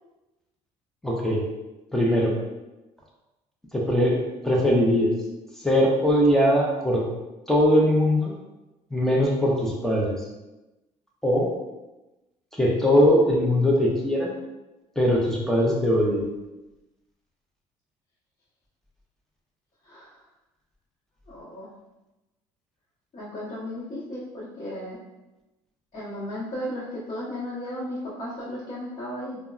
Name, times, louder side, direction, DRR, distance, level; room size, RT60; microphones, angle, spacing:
voice 1, 1.0-1.4 1.9-2.3 3.7-5.1 5.6-7.0 7.5-8.3 8.9-10.2 11.2-11.5 12.6-14.3 15.0-16.3, equal, 5° left, -3 dB, 0.5 m, -21 dB
voice 2, 19.8-20.2 21.3-21.7 23.1-25.0 25.9-29.4, left 1 dB, 40° left, -11 dB, 0.9 m, -35 dB
3.3 x 2.0 x 2.4 m, 1.0 s
cardioid pair, 120°, 12 cm